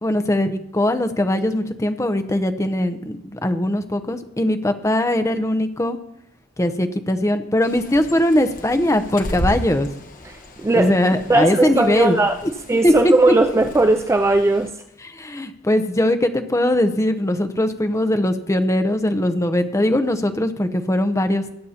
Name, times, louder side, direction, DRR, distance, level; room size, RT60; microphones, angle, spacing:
voice 1, 0.0-6.0 6.6-9.9 10.7-12.2 12.8-13.1 15.0-21.4, left 1 dB, 15° left, 0.7 m, -20 dB
Bird, 7.6-14.7, equal, 45° left, 1.3 m, -34 dB
voice 2, 10.2-10.9 11.3-12.4 12.7-14.7, right 2 dB, 15° right, 0.3 m, -18 dB
21.0 x 8.4 x 2.9 m
head